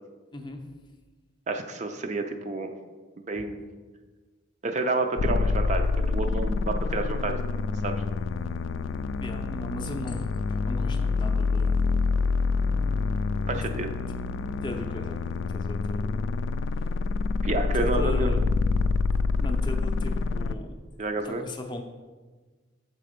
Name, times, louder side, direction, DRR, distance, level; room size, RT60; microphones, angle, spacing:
voice 1, 1.5-2.7 3.3-3.6 4.6-7.9 13.5-13.9 17.4-18.3 21.0-21.4, right 3 dB, 35° right, 5 dB, 0.4 m, -29 dB
sound 1, 5.2-20.5, left 4 dB, 80° left, 0.3 m, -27 dB
voice 2, 9.2-11.9 13.5-13.7 14.6-15.2 15.5-16.2 16.7-16.9 17.7-18.6 19.4-20.7 21.2-21.8, left 2 dB, 25° left, 4 dB, 0.5 m, -37 dB
6.6 x 4.2 x 5.1 m, 1.3 s
head